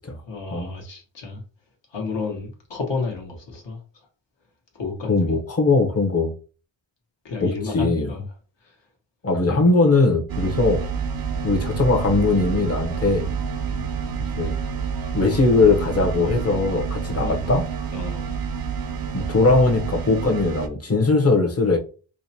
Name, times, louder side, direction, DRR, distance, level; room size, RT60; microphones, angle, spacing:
voice 1, 0.3-1.4 1.9-3.8 4.7-5.4 7.2-8.3 8.6-8.8 9.5-9.7 10.6-10.8 13.2-13.3 13.7-13.9 17.2-17.5 17.9-18.5, left 4 dB, 60° left, 1.3 m, -32 dB
voice 2, 5.1-6.3 7.4-8.1 9.2-10.8 11.4-13.3 14.4-14.6 15.1-17.7 19.1-21.8, left 3 dB, 30° left, 0.9 m, -20 dB
sound 1, 10.3-20.7, right 6 dB, 50° right, 0.5 m, -28 dB
4.8 x 2.2 x 2.8 m
wide cardioid pair, 80°, 48 cm